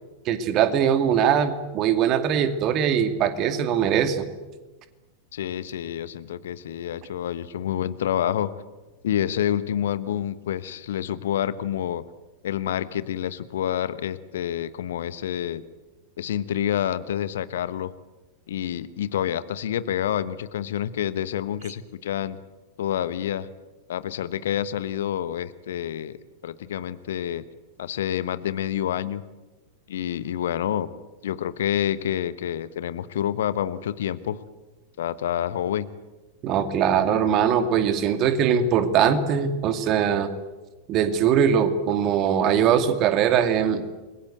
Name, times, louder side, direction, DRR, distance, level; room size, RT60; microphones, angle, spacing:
voice 1, 0.3-4.2 36.4-40.3 40.9-43.8, right 8 dB, 35° right, 9 dB, 2.5 m, -21 dB
voice 2, 5.3-8.5 9.0-12.0 12.4-15.6 16.2-17.9 18.5-22.4 22.8-23.5 23.9-26.2 26.4-27.4 27.8-29.2 29.9-30.9 31.2-34.4 35.0-35.9, left 10 dB, 60° left, 15 dB, 1.1 m, -28 dB
29.0 x 22.5 x 8.0 m, 1.2 s
figure-of-eight pair, 90°, 0 cm